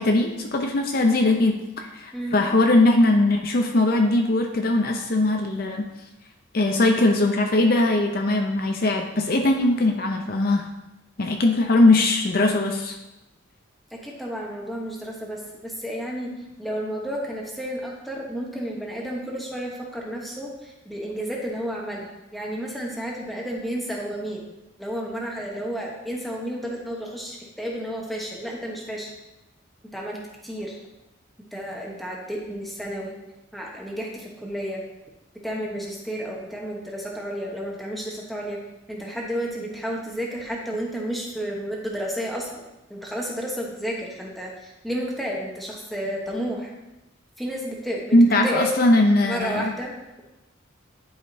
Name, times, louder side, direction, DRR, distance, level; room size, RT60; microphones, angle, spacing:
voice 1, 0.0-5.9 6.5-10.7 11.2-13.0 48.1-49.7, left 2 dB, 50° left, 3 dB, 0.6 m, -20 dB
voice 2, 13.9-16.3 16.6-24.4 24.8-29.1 29.9-30.8 31.5-33.1 33.5-34.8 35.4-38.6 38.9-42.6 42.9-46.7 47.4-48.2 48.4-48.8 49.2-50.2, equal, ahead, -2 dB, 1.1 m, -31 dB
11.0 x 4.9 x 2.7 m, 0.99 s
head